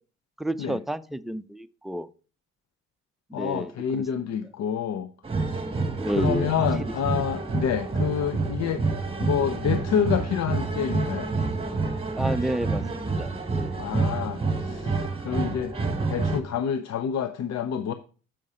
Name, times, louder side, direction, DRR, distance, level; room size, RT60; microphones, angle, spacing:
voice 1, 0.4-2.1 3.3-4.0 6.0-6.5 6.8-7.2 12.2-13.8, right 1 dB, ahead, 10 dB, 0.4 m, -31 dB
voice 2, 3.3-5.1 5.4-5.6 6.2-8.8 9.2-11.3 13.8-15.7 16.1-17.9, left 8 dB, 60° left, 11 dB, 0.6 m, -28 dB
sound 1, 5.2-16.4, right 3 dB, 20° right, 1.3 m, -28 dB
7.7 x 5.4 x 4.8 m, 0.38 s
cardioid pair, 90°, 30 cm